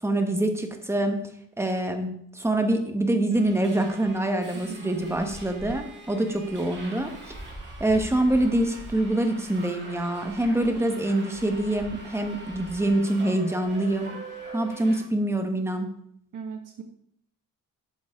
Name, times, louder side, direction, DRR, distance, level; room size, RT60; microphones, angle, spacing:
voice 1, 0.0-1.2 1.6-7.4 7.8-14.2 14.5-15.9, right 1 dB, 10° right, 5 dB, 1.2 m, -25 dB
Subway metro underground, 3.3-15.0, right 2 dB, 35° right, 4.6 m, -42 dB
voice 2, 4.5-4.9 16.3-16.8, right 6 dB, 65° right, 2 dB, 1.3 m, -38 dB
11.5 x 9.5 x 3.6 m, 0.69 s
wide cardioid pair, 165°, 33 cm